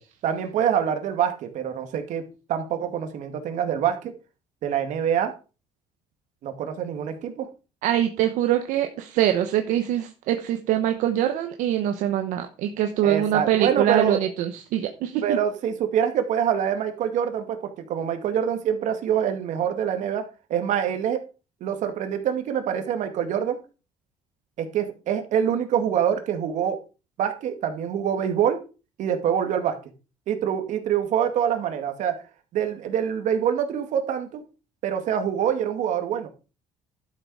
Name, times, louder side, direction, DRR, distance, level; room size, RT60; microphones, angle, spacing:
voice 1, 0.2-2.2 2.5-4.1 4.6-5.3 6.4-7.5 13.0-14.2 15.2-21.2 21.6-23.6 24.6-26.8 27.2-28.6 29.0-29.8 30.3-32.2 32.5-34.4 34.8-36.3, right 9 dB, 70° right, 7 dB, 2.2 m, -25 dB
voice 2, 7.8-15.4, right 11 dB, 85° right, 6 dB, 1.1 m, -24 dB
12.0 x 6.7 x 4.8 m, 0.33 s
cardioid pair, 120°, 13 cm